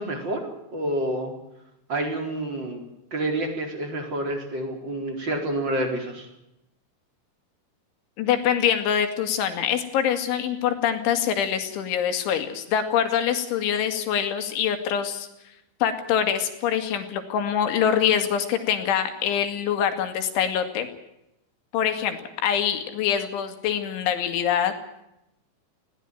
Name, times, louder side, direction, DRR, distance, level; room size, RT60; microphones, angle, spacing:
voice 1, 0.0-1.3 1.9-2.8 3.1-6.3, right 1 dB, 25° right, 4 dB, 4.5 m, -28 dB
voice 2, 8.2-15.3 15.8-20.9 21.7-24.7, left 9 dB, 80° left, 8 dB, 4.6 m, -24 dB
20.5 x 16.5 x 9.2 m, 0.86 s
omnidirectional pair, 5.3 m